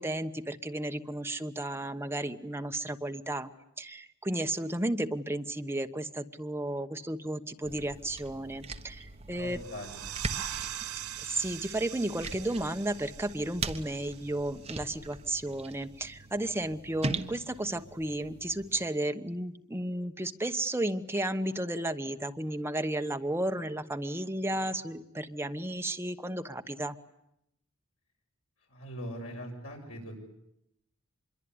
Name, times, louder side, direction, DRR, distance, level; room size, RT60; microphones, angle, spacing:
voice 1, 0.0-3.5 3.8-9.6 11.2-27.0, right 1 dB, 10° right, 7 dB, 1.1 m, -33 dB
sound 1, 7.6-18.9, right 3 dB, 30° right, 1.3 m, -41 dB
voice 2, 9.3-10.2 28.7-30.2, equal, 70° left, 2 dB, 7.1 m, -41 dB
sound 2, 9.4-14.8, right 12 dB, 90° right, 1.2 m, -42 dB
25.5 x 22.5 x 9.7 m, 0.82 s
head